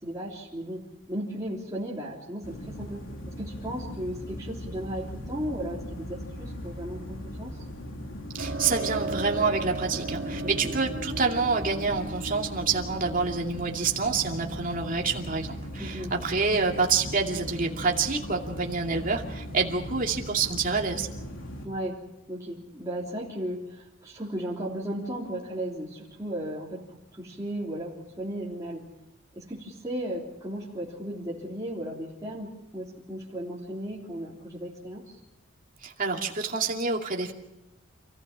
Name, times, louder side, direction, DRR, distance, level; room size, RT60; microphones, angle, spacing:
voice 1, 0.0-3.0 3.4-7.6 10.4-10.7 15.8-16.1 21.6-22.0 22.3-28.9 29.3-35.2, right 1 dB, 15° right, -7 dB, 3.3 m, -35 dB
sound 1, 2.4-21.7, equal, 75° left, 3.2 m, -39 dB
voice 2, 8.3-21.1 35.8-37.3, right 4 dB, 45° right, 1 dB, 2.5 m, -27 dB
sound 2, 8.4-16.7, right 2 dB, 65° right, 2.7 m, -37 dB
28.0 x 15.5 x 7.5 m, 0.90 s
head